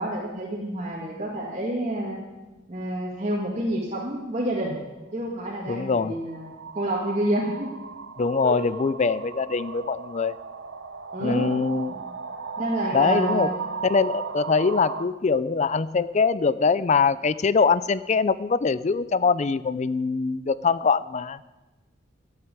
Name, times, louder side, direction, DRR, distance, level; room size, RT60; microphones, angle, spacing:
voice 1, 0.0-2.2 2.7-4.8 5.1-7.7 8.4-8.6 11.1-11.5 11.9-12.1 12.6-13.6, right 1 dB, 35° right, -4 dB, 2.0 m, -28 dB
sound 1, 3.1-3.3 5.3-15.1, right 5 dB, 65° right, 0.9 m, -36 dB
voice 2, 5.7-6.1 8.2-10.4 11.2-11.9 12.9-13.5 13.9-21.4, left 4 dB, 35° left, 17 dB, 0.4 m, -23 dB
13.5 x 7.8 x 8.9 m, 1.1 s
head